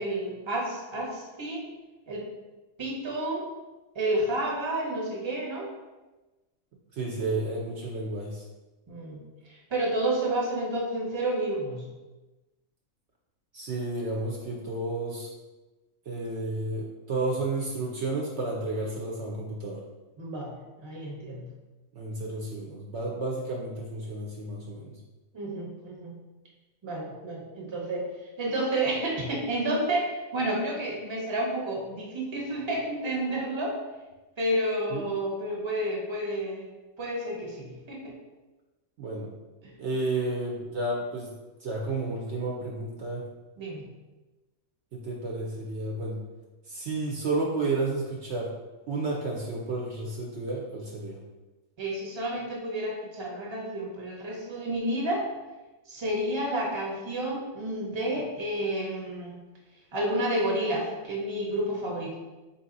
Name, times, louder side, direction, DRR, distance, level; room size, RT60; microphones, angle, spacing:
voice 1, 0.0-1.6 2.1-2.3 2.8-3.5 3.9-5.7 8.9-9.2 9.5-11.9 20.2-21.5 25.3-26.1 26.8-28.1 28.4-33.8 34.4-36.7 37.0-38.1 39.6-39.7 43.6-43.8 51.8-55.3 55.9-59.4 59.9-62.1, right 1 dB, 25° right, -3 dB, 0.8 m, -30 dB
voice 2, 6.9-8.4 13.5-15.3 16.1-19.8 22.0-24.9 34.9-35.1 39.0-39.3 39.8-41.3 41.6-43.2 44.9-46.2 46.7-48.5 48.9-51.2, right 2 dB, 65° right, -2 dB, 0.9 m, -31 dB
4.0 x 2.7 x 3.8 m, 1.1 s
omnidirectional pair, 1.4 m